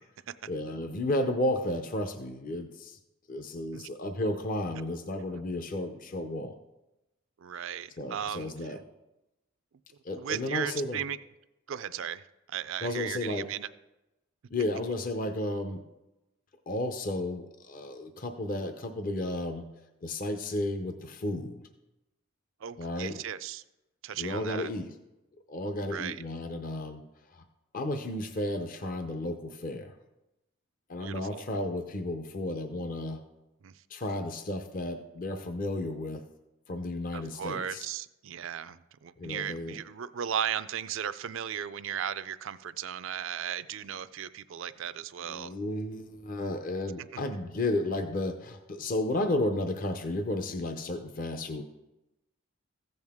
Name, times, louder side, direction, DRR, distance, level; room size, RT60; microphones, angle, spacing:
voice 1, 0.5-3.0 3.3-6.5 8.0-8.8 10.0-11.0 12.8-13.5 14.5-15.8 16.7-19.7 20.0-21.6 22.8-23.2 24.2-24.9 25.5-27.0 27.3-27.4 27.7-29.9 30.9-33.2 33.9-36.2 36.7-37.9 39.2-39.8 45.2-51.6, left 1 dB, 40° left, 7 dB, 0.6 m, -33 dB
voice 2, 7.4-8.5 10.1-11.2 11.7-13.7 22.6-23.6 24.0-24.7 25.9-26.2 31.0-31.4 33.6-33.8 37.1-45.5 46.7-46.8, right 9 dB, 65° right, 14 dB, 0.4 m, -36 dB
14.5 x 8.0 x 3.6 m, 0.97 s
head